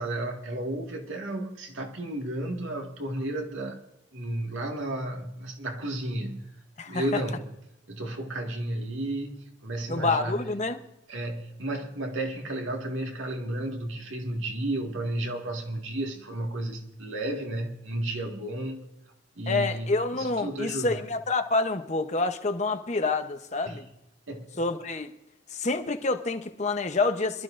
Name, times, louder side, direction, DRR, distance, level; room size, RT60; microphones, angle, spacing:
voice 1, 0.0-3.8 4.1-6.5 6.9-7.5 7.9-10.5 11.1-18.9 19.4-21.0 23.7-23.8 24.3-24.6, right 1 dB, 80° right, 1.9 m, -33 dB
voice 2, 6.8-7.2 9.9-10.8 19.5-23.8 24.6-25.1 25.5-27.4, left 3 dB, 35° left, 0.9 m, -27 dB
26.0 x 12.5 x 2.6 m
head